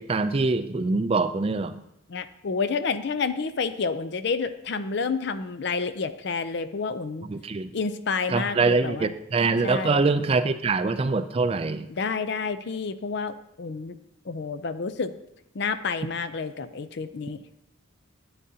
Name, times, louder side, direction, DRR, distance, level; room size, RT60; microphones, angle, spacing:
voice 1, 0.0-1.8 7.3-7.7 8.3-11.9, right 3 dB, 30° right, 11 dB, 0.3 m, -24 dB
voice 2, 2.1-7.3 7.7-9.1 9.6-10.1 11.9-14.0 14.3-15.1 15.5-17.4, left 4 dB, 55° left, 12 dB, 0.5 m, -29 dB
12.0 x 8.7 x 2.8 m, 0.81 s
head